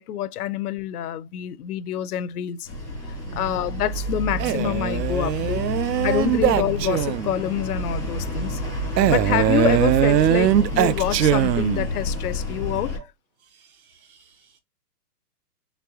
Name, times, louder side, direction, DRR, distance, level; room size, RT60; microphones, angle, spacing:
voice 1, 0.0-2.7 3.1-5.7 6.0-8.6 9.1-12.9, left 11 dB, 70° left, 0.5 m, -27 dB
sound 1, 2.6-13.0, left 1 dB, 10° right, 0.4 m, -29 dB
voice 2, 3.3-3.6 13.4-14.6, right 3 dB, 60° right, 1.5 m, -48 dB
Male speech man speaking, 4.4-7.4 9.0-11.9, right 11 dB, 85° right, 0.6 m, -21 dB
4.1 x 3.2 x 2.8 m
hypercardioid pair, 155°, 48 cm